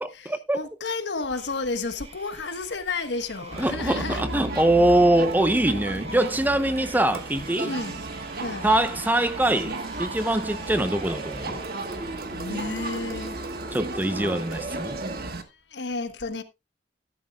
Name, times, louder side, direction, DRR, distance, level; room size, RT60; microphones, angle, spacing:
voice 1, 0.0-0.6 3.6-7.7 8.6-11.6 13.7-15.0, right 1 dB, 10° right, 0.7 m, -23 dB
voice 2, 0.5-4.3 7.6-8.0 8.4-8.7 12.3-13.4 15.4-16.4, left 3 dB, 80° left, 1.3 m, -31 dB
sound 1, 1.3-15.2, right 2 dB, 35° right, 2.0 m, -42 dB
Crowd, 3.5-15.4, right 2 dB, 60° right, 1.4 m, -34 dB
13.0 x 11.0 x 2.3 m
head